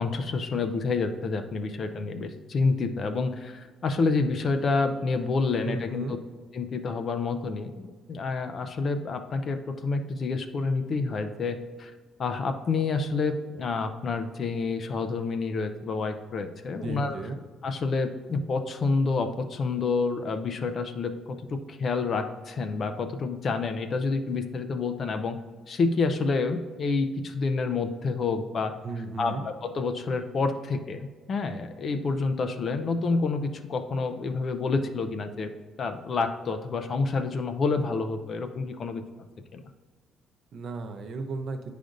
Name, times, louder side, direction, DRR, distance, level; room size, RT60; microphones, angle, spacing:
voice 1, 0.0-6.2 6.5-11.9 12.2-17.1 17.6-25.4 25.7-28.7 29.2-35.5 35.8-39.0 39.5-39.6, left 4 dB, 40° left, 8 dB, 0.4 m, -28 dB
voice 2, 5.6-6.2 16.7-17.4 28.8-29.5 40.5-41.6, right 3 dB, 50° right, 6 dB, 0.6 m, -35 dB
9.1 x 4.9 x 2.6 m, 1.4 s
cardioid pair, 150°, 0 cm